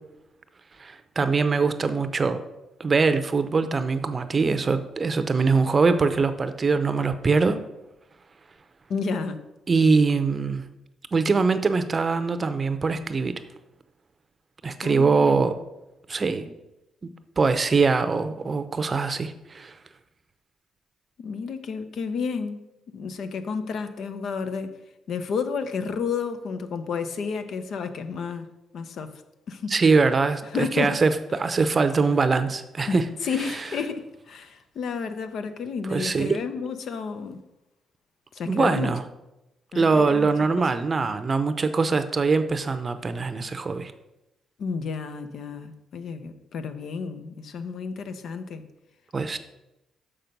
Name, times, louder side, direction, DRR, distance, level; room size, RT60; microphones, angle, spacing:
voice 1, 0.8-2.4 2.8-7.6 9.7-10.6 11.1-13.3 14.6-15.5 16.1-16.4 17.0-19.7 29.7-33.1 35.8-36.4 38.5-39.0 39.7-43.9 49.1-49.4, right 4 dB, 35° right, 10 dB, 0.6 m, -23 dB
voice 2, 8.9-9.4 14.8-15.4 21.2-22.6 22.9-24.8 25.1-28.5 28.7-29.1 29.5-29.7 30.5-31.0 32.9-37.4 38.3-38.9 39.7-40.3 40.6-40.7 44.6-48.6, left 5 dB, 65° left, 10 dB, 0.7 m, -31 dB
6.6 x 5.9 x 5.3 m, 0.94 s
cardioid pair, 90°, 0 cm